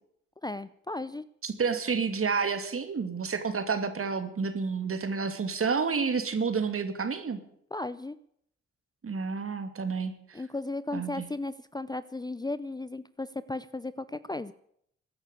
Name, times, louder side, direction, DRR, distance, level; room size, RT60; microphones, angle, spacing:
voice 1, 0.4-1.2 7.7-8.2 10.3-14.5, left 2 dB, 15° left, 16 dB, 0.6 m, -35 dB
voice 2, 1.4-7.4 9.0-10.4 10.9-11.2, right 5 dB, 50° right, 9 dB, 2.7 m, -30 dB
16.5 x 9.7 x 8.4 m, 0.69 s
supercardioid pair, 60°, 29 cm